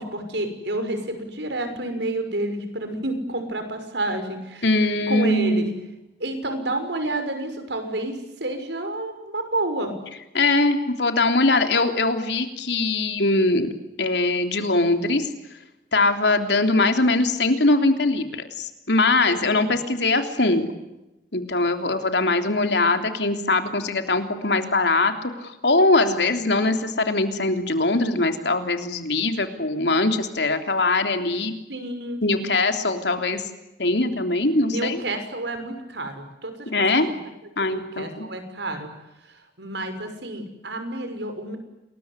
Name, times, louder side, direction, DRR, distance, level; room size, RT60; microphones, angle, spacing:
voice 1, 0.0-4.7 5.1-5.7 6.2-9.9 19.3-19.8 31.7-32.2 34.6-37.2 37.6-38.9 39.2-41.6, right 1 dB, 85° right, 8 dB, 6.2 m, -30 dB
voice 2, 4.6-5.7 10.3-13.7 14.0-15.3 15.9-20.6 21.3-25.1 25.4-31.5 32.2-33.4 33.8-35.0 36.7-37.1 37.6-38.3, left 2 dB, 80° left, 7 dB, 3.4 m, -21 dB
28.5 x 21.5 x 9.8 m, 0.95 s
head